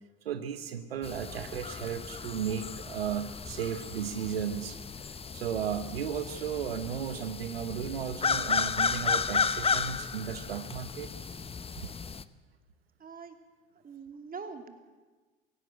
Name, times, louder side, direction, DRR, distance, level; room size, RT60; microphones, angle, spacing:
voice 1, 0.2-4.8 5.3-11.1, right 8 dB, 90° right, 10 dB, 1.0 m, -35 dB
sound 1, 1.0-12.2, left 5 dB, 20° left, 0.8 m, -33 dB
voice 2, 13.0-13.4 13.8-14.7, right 5 dB, 30° right, 7 dB, 2.8 m, -43 dB
17.5 x 16.0 x 9.0 m, 1.3 s
hypercardioid pair, 75°, 29 cm